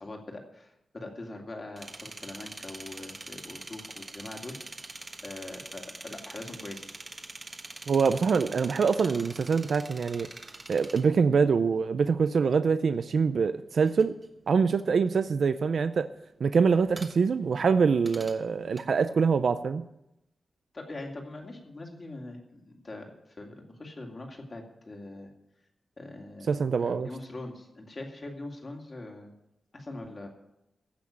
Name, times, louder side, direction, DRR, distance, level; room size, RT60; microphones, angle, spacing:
voice 1, 0.0-4.6 5.2-6.8 20.7-25.3 26.0-26.5 26.8-29.3 29.7-30.3, left 2 dB, 30° left, 1 dB, 2.2 m, -42 dB
sound 1, 1.8-12.5 12.8-18.8, right 2 dB, 25° right, 1.2 m, -45 dB
voice 2, 7.9-10.3 10.7-14.1 14.5-16.1 16.4-19.8 26.5-27.1, right 5 dB, 60° right, 10 dB, 0.5 m, -24 dB
15.5 x 6.1 x 8.7 m, 0.85 s
wide cardioid pair, 175°, 0 cm